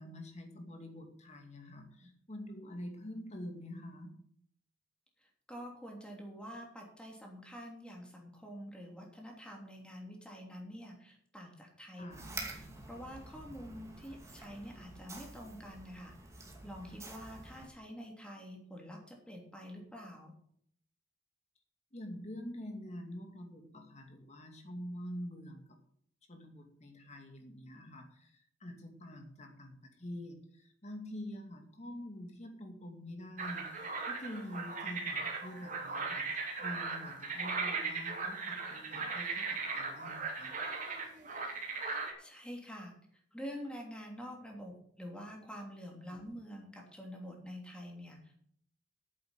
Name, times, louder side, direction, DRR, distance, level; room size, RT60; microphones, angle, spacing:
voice 1, 0.0-4.2 12.0-12.3 21.9-25.6 26.3-40.6 46.1-46.3, left 1 dB, 35° left, 4 dB, 2.4 m, -46 dB
voice 2, 5.2-12.1 12.3-16.1 16.6-20.3 42.2-42.9 43.3-48.4, equal, 5° left, 0 dB, 3.1 m, -47 dB
sound 1, 12.1-17.7, right 2 dB, 15° right, 2.3 m, -48 dB
sound 2, 33.4-42.1, right 4 dB, 45° right, 2.5 m, -38 dB
9.4 x 7.6 x 8.4 m, 0.65 s
head